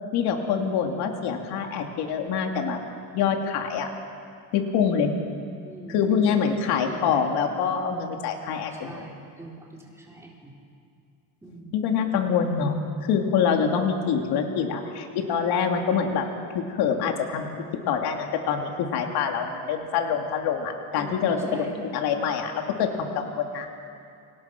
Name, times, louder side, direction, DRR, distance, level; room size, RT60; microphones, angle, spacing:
voice 1, 0.1-2.8 3.1-3.9 4.5-5.1 5.9-9.0 11.7-16.3 16.5-23.9, left 6 dB, 85° left, 3 dB, 3.0 m, -25 dB
voice 2, 5.6-7.3 8.7-10.5 11.4-11.7 21.0-21.8, right 2 dB, 5° right, -2 dB, 4.2 m, -42 dB
29.5 x 26.5 x 6.2 m, 2.4 s
cardioid pair, 165°, 38 cm